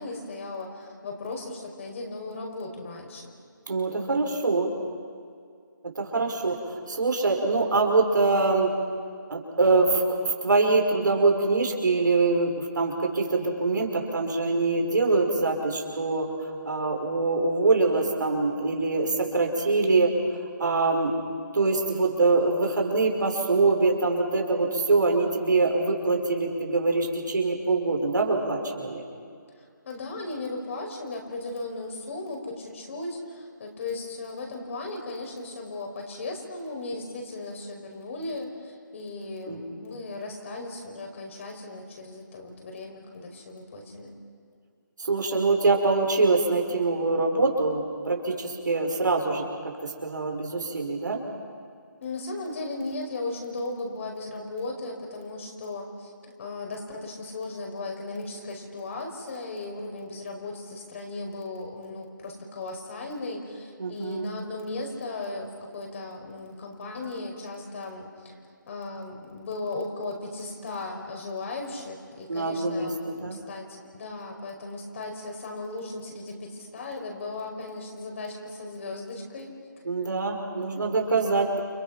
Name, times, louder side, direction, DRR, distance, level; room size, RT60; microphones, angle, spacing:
voice 1, 0.0-3.3 29.6-44.2 52.0-79.5 80.6-81.1, left 2 dB, 40° left, 1 dB, 5.4 m, -36 dB
voice 2, 3.7-4.7 5.8-8.7 9.3-21.2 21.5-29.0 39.5-39.8 45.0-51.2 63.8-64.3 72.3-73.4 79.8-81.6, right 3 dB, 70° right, 1 dB, 5.7 m, -24 dB
29.5 x 28.5 x 5.9 m, 2.2 s
figure-of-eight pair, 155°, 11 cm